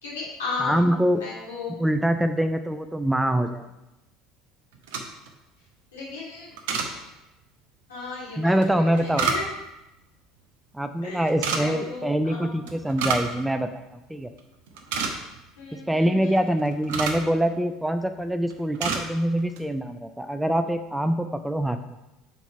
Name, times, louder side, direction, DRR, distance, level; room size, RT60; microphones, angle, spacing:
voice 1, 0.0-1.8 5.6-6.5 7.9-9.5 11.0-12.6 15.6-16.4, left 4 dB, 75° left, -6 dB, 2.4 m, -35 dB
voice 2, 0.6-1.2 1.8-3.7 8.4-9.3 10.7-14.3 15.9-21.8, right 1 dB, 5° right, 8 dB, 0.4 m, -24 dB
sound 1, 4.7-5.3 6.6-6.9 8.6-9.7 11.3-11.6 12.7-13.3 13.6-13.7 14.2-14.4 14.7-15.4 16.4-17.3 18.0-18.2 18.5-19.1 19.4-19.6, right 5 dB, 65° right, 0.8 m, -29 dB
5.3 x 4.5 x 5.6 m, 0.94 s
figure-of-eight pair, 65°, 0 cm